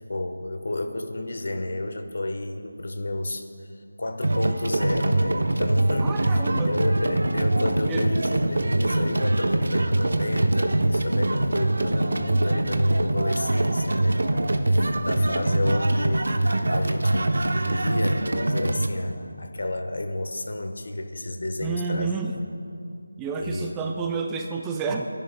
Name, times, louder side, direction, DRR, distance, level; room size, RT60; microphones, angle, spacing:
voice 1, 0.1-22.1 23.4-23.7, left 2 dB, 65° left, 6 dB, 1.2 m, -31 dB
sound 1, 4.2-18.9, right 1 dB, 70° right, 0.9 m, -23 dB
voice 2, 6.0-6.7 7.9-8.0 21.6-22.3 23.2-25.1, right 5 dB, 10° right, 3 dB, 0.4 m, -29 dB
29.0 x 11.0 x 2.3 m, 2.4 s
figure-of-eight pair, 170°, 0 cm